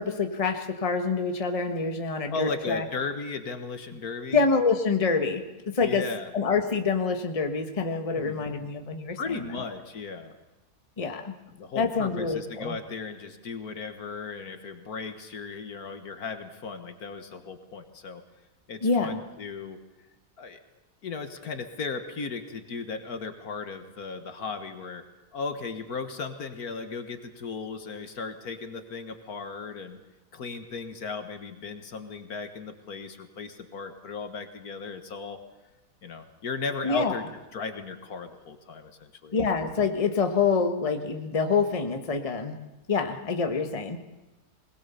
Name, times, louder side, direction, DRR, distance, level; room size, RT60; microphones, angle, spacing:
voice 1, 0.0-2.8 4.3-6.0 6.3-9.4 11.0-11.3 11.8-12.7 18.8-19.1 36.8-37.2 39.3-42.6 42.9-44.0, left 4 dB, 25° left, 5 dB, 1.3 m, -26 dB
voice 2, 2.3-4.5 5.8-6.3 8.1-8.5 9.2-10.3 11.6-18.2 18.7-19.8 20.4-20.6 21.0-25.0 25.3-30.0 30.3-35.4 36.0-37.2 37.5-39.4, left 4 dB, 65° left, 7 dB, 1.9 m, -36 dB
21.0 x 20.5 x 7.0 m, 1.0 s
omnidirectional pair, 1.7 m